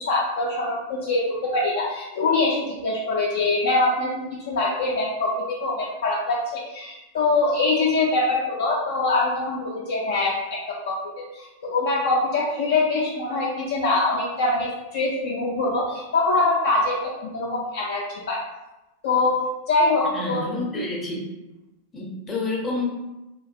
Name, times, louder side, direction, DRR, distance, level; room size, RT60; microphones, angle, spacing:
voice 1, 0.1-4.1 4.5-11.0 11.3-18.4 19.0-19.4 19.7-20.4, left 3 dB, 55° left, -5 dB, 0.4 m, -23 dB
voice 2, 20.1-21.2 21.9-22.8, left 2 dB, 25° left, -1 dB, 0.7 m, -29 dB
2.6 x 2.2 x 2.6 m, 1.0 s
figure-of-eight pair, 90°, 0 cm